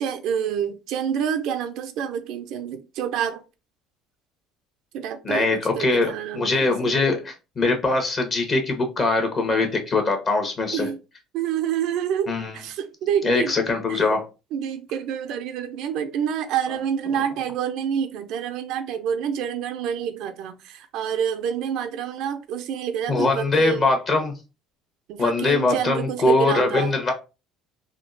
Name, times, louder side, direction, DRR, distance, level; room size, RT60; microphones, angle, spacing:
voice 1, 0.0-3.4 4.9-5.5 5.7-7.0 10.7-11.0 11.3-13.6 13.9-14.1 14.5-23.9 25.1-27.0, right 8 dB, 70° right, 0.4 m, -27 dB
voice 2, 5.2-10.9 12.3-12.6 13.2-14.2 23.1-24.3 25.2-27.1, left 3 dB, 40° left, 1.1 m, -22 dB
3.6 x 2.3 x 2.5 m
supercardioid pair, 75°, 0 cm